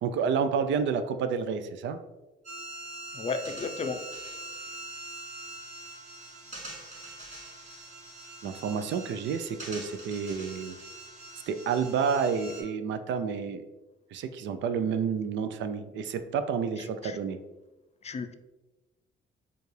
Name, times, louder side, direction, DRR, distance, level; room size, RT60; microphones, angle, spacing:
voice 1, 0.0-2.0 8.4-10.8 11.5-13.6 14.1-17.4, right 6 dB, 70° right, 9 dB, 0.4 m, -30 dB
sound 1, 2.4-12.6, right 2 dB, 35° right, 1.4 m, -43 dB
voice 2, 3.1-4.0 17.0-17.2 18.0-18.3, left 4 dB, 35° left, 8 dB, 0.4 m, -33 dB
4.6 x 2.4 x 3.2 m, 1.1 s
cardioid pair, 90°, 20 cm